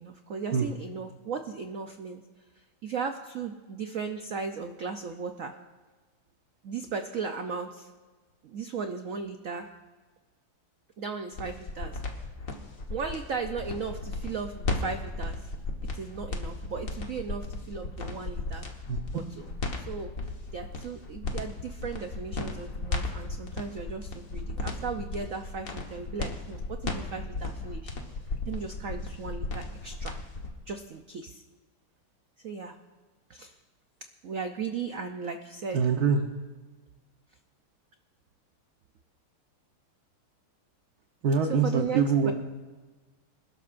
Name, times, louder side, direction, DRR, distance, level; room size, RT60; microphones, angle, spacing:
voice 1, 0.0-2.2 2.6-5.6 6.6-7.9 8.4-9.7 11.0-12.0 12.9-15.5 15.9-18.7 19.1-19.2 19.7-28.0 28.5-30.2 30.7-31.4 32.4-32.8 33.3-33.6 34.2-35.8 41.6-42.3, right 5 dB, 75° right, 6 dB, 0.7 m, -36 dB
sound 1, 11.3-30.5, left 3 dB, 45° left, 1.6 m, -35 dB
voice 2, 35.7-36.2 41.2-42.3, right 5 dB, 55° right, 3 dB, 1.3 m, -24 dB
26.5 x 12.0 x 2.6 m, 1.3 s
omnidirectional pair, 2.3 m